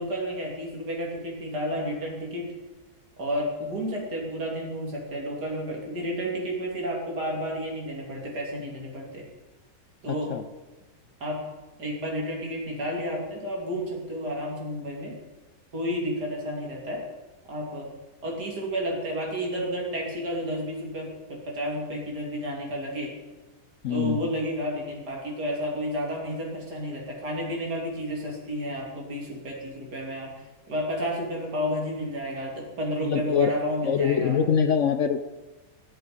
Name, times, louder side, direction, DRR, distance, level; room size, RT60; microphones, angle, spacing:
voice 1, 0.0-2.5 3.2-9.2 10.0-10.3 11.2-11.4 11.8-15.2 15.7-17.0 17.5-17.9 18.2-23.1 23.9-30.3 30.7-34.4, equal, 80° right, -1 dB, 3.6 m, -31 dB
voice 2, 10.1-10.4 23.8-24.3 33.0-33.5 33.8-35.2, left 7 dB, 65° left, 10 dB, 0.8 m, -24 dB
22.0 x 7.9 x 5.2 m, 1.1 s
omnidirectional pair, 1.7 m